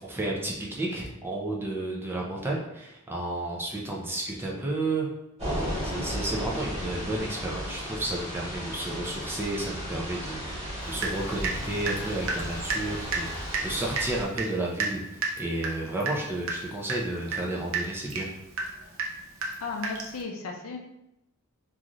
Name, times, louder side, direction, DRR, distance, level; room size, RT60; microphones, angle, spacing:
voice 1, 0.0-5.1 5.4-13.3 13.6-18.3, right 2 dB, 10° right, -2 dB, 0.4 m, -32 dB
sound 1, 5.4-14.2, equal, 30° right, 1.0 m, -35 dB
Water tap faucet / Drip, 11.0-11.6 11.9-20.2, right 4 dB, 60° right, 0.5 m, -32 dB
voice 2, 19.4-20.8, left 4 dB, 70° left, 2 dB, 0.5 m, -35 dB
3.0 x 2.4 x 2.5 m, 0.86 s
head